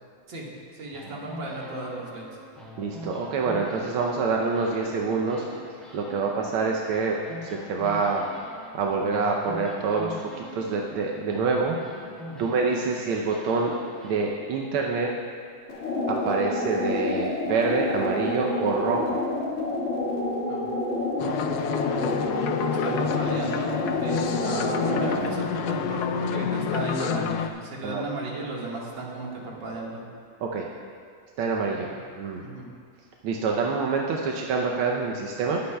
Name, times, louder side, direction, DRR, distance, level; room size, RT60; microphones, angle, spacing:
voice 1, 0.3-2.2 12.2-12.5 20.5-20.7 21.5-21.9 22.7-30.0 31.8-32.0 32.4-32.7, right 2 dB, 65° right, -3 dB, 2.4 m, -35 dB
sound 1, 0.9-4.3 4.5-14.3, left 1 dB, ahead, 2.1 m, -43 dB
voice 2, 2.8-5.4 5.9-8.2 8.7-11.8 12.4-13.7 14.0-15.1 16.1-19.2 27.8-28.0 30.4-30.7 31.4-32.4 33.2-35.6, right 4 dB, 85° right, 0 dB, 1.6 m, -26 dB
sound 2, 15.7-25.3, left 2 dB, 35° left, 2.0 m, -28 dB
sound 3, 21.2-27.5, left 7 dB, 80° left, 0.8 m, -29 dB
20.5 x 9.6 x 2.3 m, 2.1 s
omnidirectional pair, 2.3 m